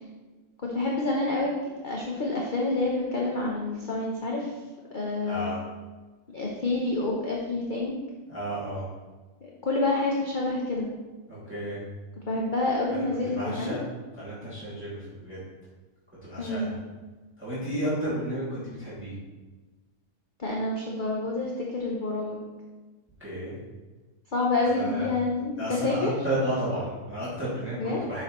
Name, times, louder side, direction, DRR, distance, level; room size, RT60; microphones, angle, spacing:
voice 1, 0.6-1.5 1.8-4.5 4.9-5.6 6.3-7.9 9.6-10.9 12.3-13.8 16.4-16.8 20.4-22.4 24.3-26.1 27.8-28.0, left 2 dB, 35° left, -3 dB, 1.0 m, -28 dB
voice 2, 5.2-5.6 8.3-8.9 11.3-11.8 12.9-13.8 14.2-15.4 16.2-16.8 17.4-19.1 23.2-23.6 24.7-25.1 25.6-28.2, right 1 dB, 5° right, -10 dB, 2.3 m, -32 dB
7.9 x 6.3 x 3.1 m, 1.3 s
omnidirectional pair, 1.7 m